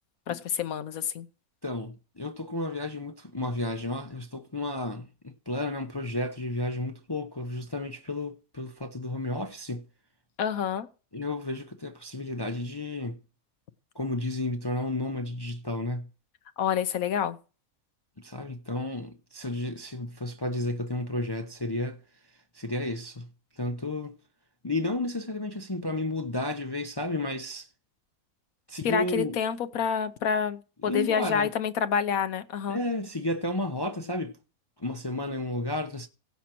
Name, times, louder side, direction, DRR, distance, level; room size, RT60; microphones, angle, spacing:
voice 1, 0.3-1.3 10.4-10.9 16.6-17.4 28.8-32.8, left 7 dB, 75° left, 1.2 m, -28 dB
voice 2, 1.6-9.8 11.1-13.2 13.9-16.1 18.2-22.0 22.5-23.3 23.6-24.2 24.6-27.7 28.7-29.4 30.8-31.5 32.7-34.4 34.8-36.1, left 2 dB, 25° left, 0.5 m, -32 dB
16.5 x 7.2 x 4.5 m
omnidirectional pair, 1.5 m